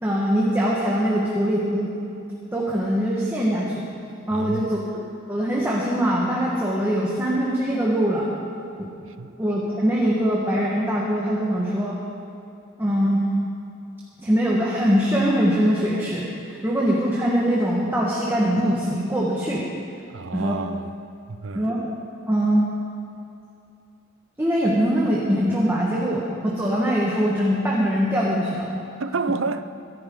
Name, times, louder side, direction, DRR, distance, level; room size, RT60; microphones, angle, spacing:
voice 1, 0.0-1.9 2.5-3.8 4.3-8.3 8.8-8.9 9.4-12.0 12.8-13.3 14.2-19.7 20.3-20.6 21.5-21.9 22.3-22.7 24.4-28.7, equal, 10° right, 1.4 m, -22 dB
voice 2, 4.3-4.6 9.2-9.4 20.1-20.9 21.3-21.7 29.0-29.7, right 4 dB, 65° right, 0.6 m, -29 dB
23.0 x 11.0 x 3.8 m
head